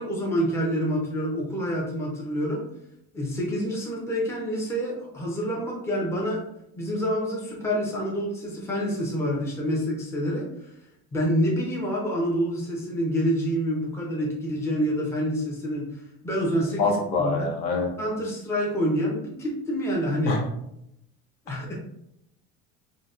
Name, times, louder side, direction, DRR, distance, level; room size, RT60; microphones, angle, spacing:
voice 1, 0.0-2.6 3.1-6.4 6.8-10.7 11.1-17.5 18.0-20.4 21.5-21.7, equal, 10° left, -3 dB, 0.5 m, -27 dB
voice 2, 16.8-17.9 20.2-20.4, left 3 dB, 80° left, 0 dB, 0.9 m, -25 dB
3.8 x 2.1 x 2.4 m, 0.79 s
cardioid pair, 150°, 31 cm